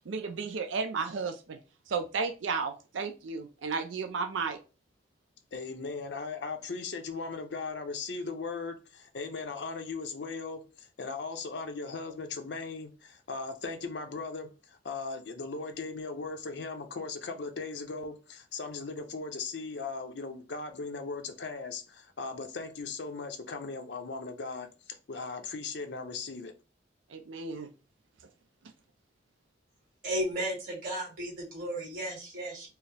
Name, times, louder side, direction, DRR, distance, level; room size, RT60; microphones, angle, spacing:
voice 1, 0.1-1.6 1.9-4.6 27.1-27.7, right 5 dB, 85° right, 0.5 m, -33 dB
voice 2, 5.5-26.5, left 4 dB, 65° left, 0.6 m, -38 dB
voice 3, 30.0-32.7, right 1 dB, 50° right, 2.2 m, -34 dB
4.6 x 2.0 x 3.3 m
head